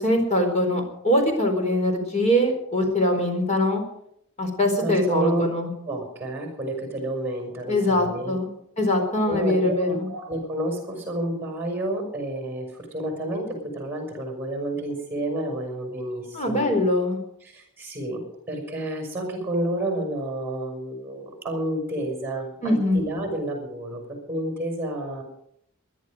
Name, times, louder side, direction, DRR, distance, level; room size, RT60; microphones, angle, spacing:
voice 1, 0.0-3.8 4.4-5.7 7.7-8.5 8.8-10.1 16.3-17.2 22.6-23.0, left 1 dB, 35° left, 3 dB, 4.5 m, -22 dB
voice 2, 4.8-5.4 5.8-8.4 9.3-16.7 17.4-18.2 18.5-25.2, right 1 dB, 10° right, 3 dB, 6.0 m, -30 dB
22.5 x 11.5 x 5.1 m, 0.72 s
head